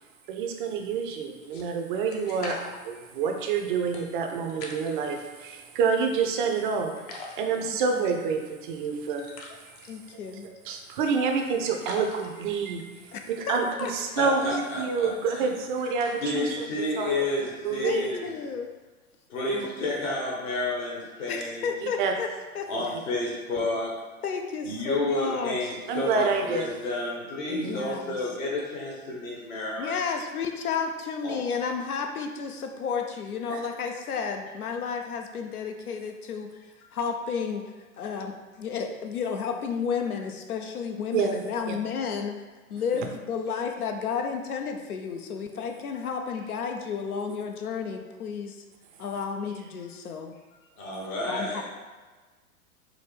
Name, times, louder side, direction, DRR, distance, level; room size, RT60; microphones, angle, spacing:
voice 1, 0.3-2.6 2.8-6.9 7.4-9.2 10.1-12.8 13.3-16.7 17.0-17.2 17.6-18.1 19.5-19.7 21.8-22.1 25.9-26.7 27.5-27.8 33.5-33.6 41.1-41.8, right 5 dB, 35° right, 3 dB, 0.5 m, -28 dB
sound 1, 1.4-5.2 5.7-6.6 7.0-18.7, left 3 dB, 30° left, 0.4 m, -46 dB
voice 2, 7.6-8.0 9.9-10.5 13.1-13.9 17.8-18.7 21.3-22.3 22.5-22.7 24.2-25.7 27.7-28.2 29.8-36.6 36.9-37.7 38.0-42.4 42.7-48.6 49.0-50.4 51.3-51.6, left 6 dB, 85° left, 4 dB, 0.5 m, -32 dB
voice 3, 14.2-15.5 16.2-18.3 19.3-21.7 22.7-23.9 24.6-30.1 31.2-31.4 50.8-51.6, left 2 dB, 65° left, -4 dB, 1.3 m, -31 dB
4.7 x 2.2 x 3.2 m, 1.3 s
figure-of-eight pair, 100°, 43 cm